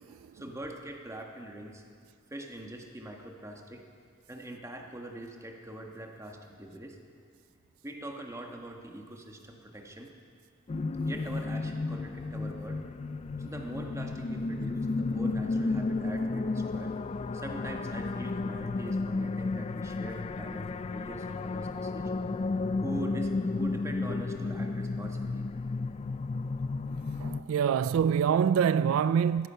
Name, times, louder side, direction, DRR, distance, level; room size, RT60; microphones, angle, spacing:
voice 1, 0.1-1.8 2.3-3.8 4.3-7.0 7.8-10.1 11.0-12.8 13.4-16.9 17.3-22.1 22.8-25.5 27.5-27.6, right 1 dB, 15° right, 1.4 m, -42 dB
sound 1, 10.7-27.4, left 3 dB, 30° left, 0.3 m, -33 dB
voice 2, 27.2-29.5, right 7 dB, 80° right, 0.3 m, -25 dB
16.0 x 13.5 x 5.6 m
head